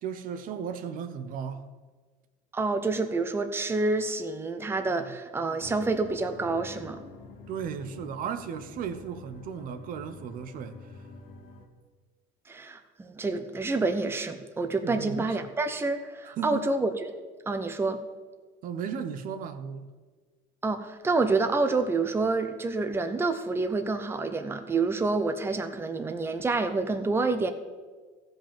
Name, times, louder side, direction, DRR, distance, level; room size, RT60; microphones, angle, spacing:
voice 1, 0.0-1.7 7.5-11.1 14.8-15.4 16.2-16.6 18.6-19.9, right 7 dB, 55° right, 0.9 m, -35 dB
voice 2, 2.5-7.0 12.5-16.9 17.5-18.0 20.6-27.5, right 3 dB, 15° right, 0.8 m, -28 dB
sound 1, 5.6-11.7, left 4 dB, 65° left, 1.5 m, -47 dB
14.5 x 5.3 x 7.4 m
cardioid pair, 120°, 16 cm